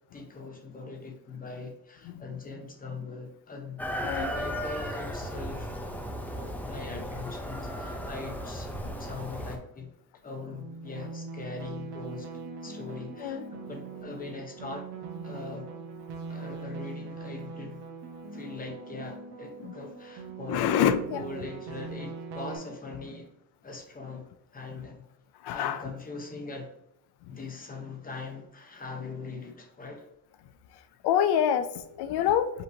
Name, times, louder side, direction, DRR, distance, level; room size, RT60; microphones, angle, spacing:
voice 1, 0.1-3.8 4.1-5.7 6.3-9.9 10.2-12.3 12.6-14.9 15.2-15.7 16.3-17.8 18.3-23.3 23.6-25.0 25.5-26.7 27.3-30.1, left 3 dB, 20° left, 3 dB, 0.7 m, -41 dB
Chicken rooster, 3.8-9.6, equal, 5° left, 0.3 m, -35 dB
sound 1, 10.5-22.6, right 4 dB, 70° right, 0.9 m, -41 dB
voice 2, 20.5-21.2 25.4-25.8 31.0-32.5, left 9 dB, 70° left, 11 dB, 0.5 m, -26 dB
5.2 x 3.0 x 2.6 m, 0.80 s
cardioid pair, 135°, 41 cm